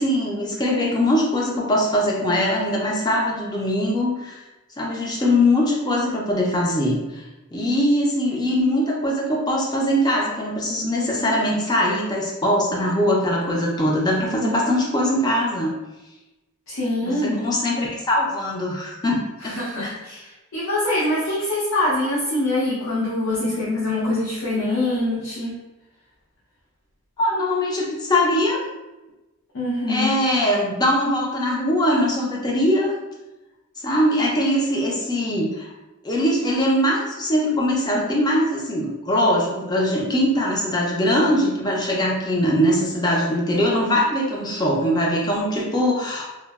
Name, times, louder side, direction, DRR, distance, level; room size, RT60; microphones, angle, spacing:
voice 1, 0.0-4.4 4.8-7.2 7.5-15.7 17.0-19.9 27.2-28.6 29.9-32.9 33.8-35.7 36.0-46.3, left 1 dB, 20° left, -2 dB, 0.4 m, -21 dB
voice 2, 16.7-17.4 19.4-25.5 29.5-30.1, left 1 dB, 70° left, -8 dB, 0.6 m, -24 dB
2.9 x 2.0 x 2.2 m, 1.0 s
head